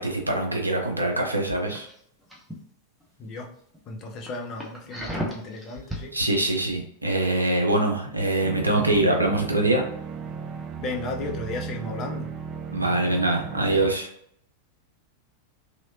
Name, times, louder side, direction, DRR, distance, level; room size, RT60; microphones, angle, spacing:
voice 1, 0.0-1.9 6.1-9.8 12.7-14.1, right 2 dB, 85° right, 1 dB, 0.7 m, -24 dB
sound 1, 1.7-2.6 3.0-3.3 3.7-3.8 4.2-6.1 6.5-6.6, equal, ahead, 0.8 m, -34 dB
voice 2, 3.9-6.1 10.8-12.3, left 3 dB, 35° left, 1 dB, 0.7 m, -34 dB
sound 2, 8.4-14.0, right 6 dB, 30° right, 0.3 m, -36 dB
3.2 x 2.8 x 2.7 m, 0.69 s
figure-of-eight pair, 90°, 0 cm